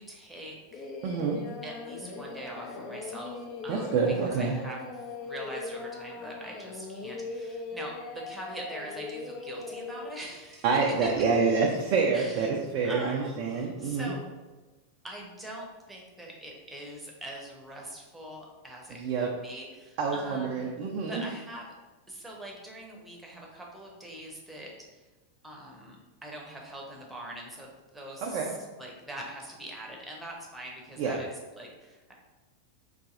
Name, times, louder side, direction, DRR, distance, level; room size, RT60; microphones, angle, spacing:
voice 1, 0.0-0.9 1.6-4.8 5.2-10.7 11.0-11.1 12.1-12.5 12.8-14.2 15.0-20.8 21.1-21.7 22.1-25.0 25.4-26.0 26.2-32.1, right 1 dB, 5° right, -1 dB, 0.8 m, -43 dB
Singing, 0.7-10.1, left 3 dB, 30° left, 0.4 m, -40 dB
voice 2, 1.0-1.4 3.7-4.5 10.6-14.1 19.0-19.3 20.0-21.2 28.2-28.5 31.0-31.2, right 5 dB, 45° right, -1 dB, 0.4 m, -27 dB
4.1 x 2.6 x 2.5 m, 1.2 s
figure-of-eight pair, 90°, 0 cm